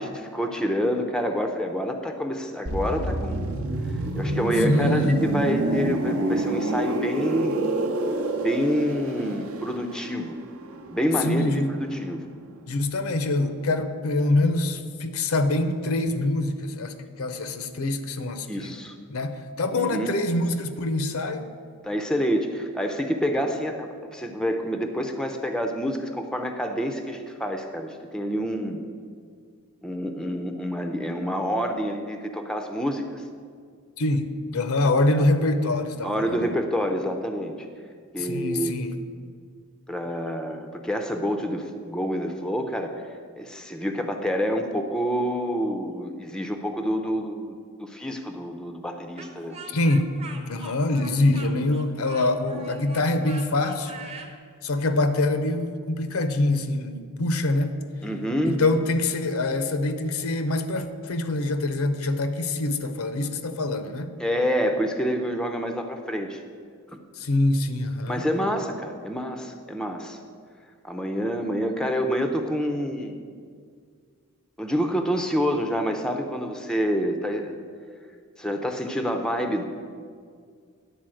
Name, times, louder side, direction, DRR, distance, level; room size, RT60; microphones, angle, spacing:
voice 1, 0.0-3.5 4.2-7.7 8.4-10.4 10.9-12.3 18.5-19.0 19.7-20.1 21.8-28.8 29.8-33.2 36.0-37.7 38.1-38.7 39.9-49.6 58.0-58.6 64.2-66.4 66.9-67.0 68.1-70.2 70.8-73.2 74.6-77.5 78.4-79.6, equal, 5° left, 5 dB, 0.5 m, -27 dB
sound 1, 2.7-12.3 12.6-12.8, right 2 dB, 65° right, 0.7 m, -28 dB
voice 2, 4.6-5.2 11.2-11.7 12.7-18.7 19.1-21.4 34.0-36.5 38.2-38.9 49.7-50.1 50.5-53.9 54.6-57.8 58.4-64.1 67.2-68.3, left 2 dB, 70° left, 9 dB, 0.6 m, -25 dB
Speech, 49.2-54.3, right 4 dB, 25° right, 0.7 m, -43 dB
10.5 x 4.1 x 7.6 m, 2.1 s
head